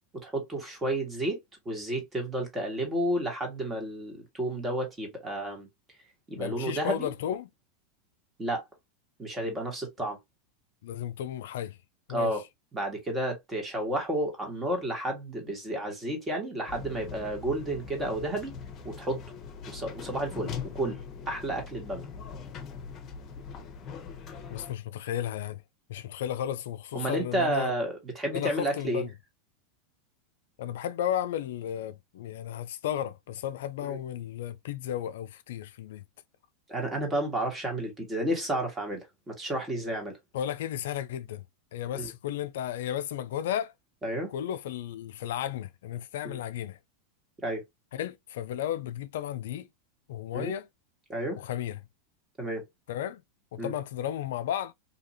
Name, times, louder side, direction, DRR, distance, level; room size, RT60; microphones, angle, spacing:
voice 1, 0.2-1.4 1.6-5.7 6.3-7.1 8.4-8.7 9.2-10.2 12.1-12.4 12.7-18.5 18.8-19.2 19.6-21.0 21.3-22.1 26.9-29.0 33.8-34.0 36.7-40.2 41.9-42.1 44.0-44.3 46.2-46.4 47.4-47.6 50.3-50.5 51.1-51.4 52.4-52.6 53.6-53.7, right 1 dB, 20° right, 1.5 m, -31 dB
voice 2, 6.4-7.5 10.8-11.8 12.1-12.4 24.5-25.6 25.9-27.7 28.3-29.1 30.6-36.0 40.3-41.4 41.7-43.7 44.3-46.8 47.9-49.7 50.1-50.7 51.4-51.8 52.9-53.2 53.5-54.7, left 11 dB, 70° left, 0.3 m, -34 dB
sound 1, 16.7-24.7, left 6 dB, 35° left, 0.8 m, -41 dB
2.7 x 2.5 x 2.7 m
hypercardioid pair, 95°, 0 cm